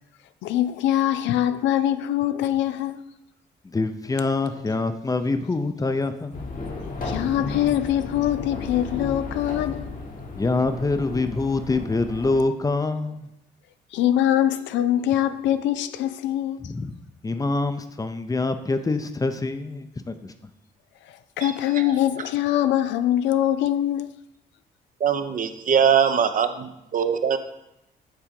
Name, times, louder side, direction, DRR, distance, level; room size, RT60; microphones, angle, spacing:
voice 1, 0.4-3.0 7.1-9.9 13.9-16.6 21.4-24.1, left 12 dB, 85° left, 0.4 m, -23 dB
voice 2, 3.6-6.4 10.4-13.3 16.6-17.0 17.2-20.3, left 3 dB, 20° left, 0.6 m, -25 dB
sound 1, 6.3-12.4, left 3 dB, 50° left, 1.2 m, -34 dB
voice 3, 21.4-22.0 25.0-27.4, right 7 dB, 45° right, 0.7 m, -22 dB
7.4 x 3.6 x 5.3 m
cardioid pair, 80°, 18 cm